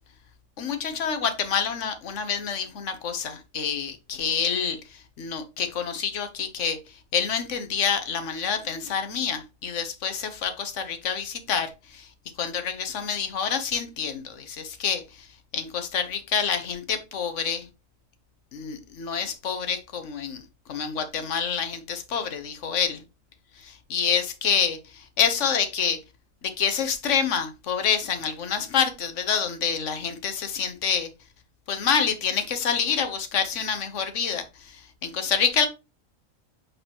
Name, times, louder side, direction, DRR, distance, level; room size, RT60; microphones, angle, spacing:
voice 1, 0.6-6.8 7.1-12.1 12.4-15.3 15.5-17.7 18.5-20.4 20.7-23.0 23.6-26.0 26.4-31.1 31.7-35.7, left 7 dB, 65° left, 1.3 m, -27 dB
7.9 x 4.0 x 3.0 m
omnidirectional pair, 1.4 m